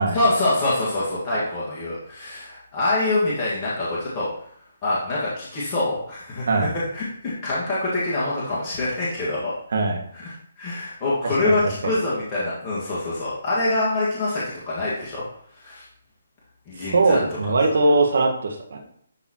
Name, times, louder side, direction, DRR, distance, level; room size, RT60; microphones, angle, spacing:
voice 1, 0.1-4.3 4.8-6.7 6.9-9.5 10.1-15.2 15.6-15.9 16.7-17.2, left 2 dB, 25° left, -8 dB, 1.8 m, -25 dB
voice 2, 16.9-18.8, right 3 dB, 65° right, 2 dB, 1.5 m, -20 dB
11.5 x 4.0 x 3.0 m, 0.66 s
hypercardioid pair, 150°, 0 cm